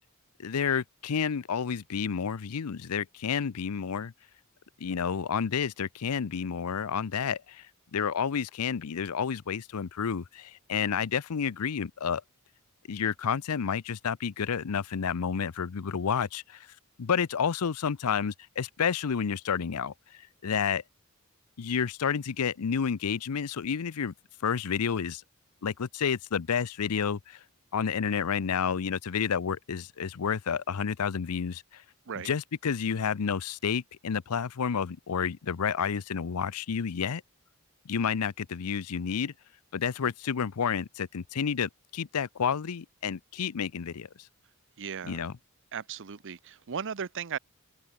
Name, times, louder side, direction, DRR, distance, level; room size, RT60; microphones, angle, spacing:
voice 1, 0.4-4.1 4.8-7.7 7.9-12.2 12.9-16.7 17.0-19.9 20.4-20.8 21.6-24.1 24.4-25.2 25.6-27.4 27.7-31.8 32.2-37.2 37.9-39.3 39.7-44.1 45.0-45.3, left 6 dB, 85° left, 0.6 m, -30 dB
voice 2, 44.8-45.2 45.7-47.4, right 7 dB, 60° right, 0.7 m, -36 dB
open air
head